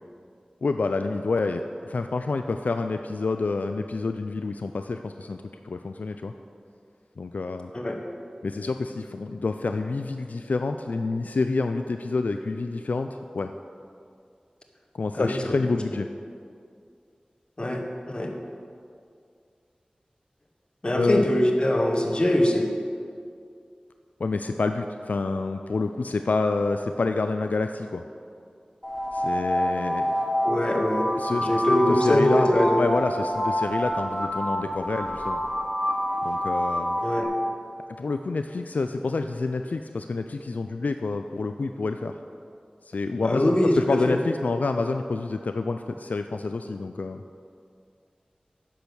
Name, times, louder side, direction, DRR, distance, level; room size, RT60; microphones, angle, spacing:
voice 1, 0.6-6.3 7.2-7.7 8.4-13.1 13.3-13.5 14.9-16.1 20.9-21.2 24.2-28.0 29.1-30.1 31.2-31.5 31.9-32.5 32.8-35.4 36.2-37.0 38.0-42.1 42.9-47.2, left 3 dB, 80° left, 7 dB, 0.4 m, -28 dB
voice 2, 15.1-15.6 17.6-18.3 20.8-22.6 30.4-31.1 31.4-32.8 37.0-37.3 43.2-44.2, left 1 dB, 40° left, 2 dB, 1.3 m, -23 dB
sound 1, 28.8-37.2, equal, 5° left, 2.3 m, -27 dB
10.0 x 6.2 x 6.9 m, 2.4 s
wide cardioid pair, 70°, 3 cm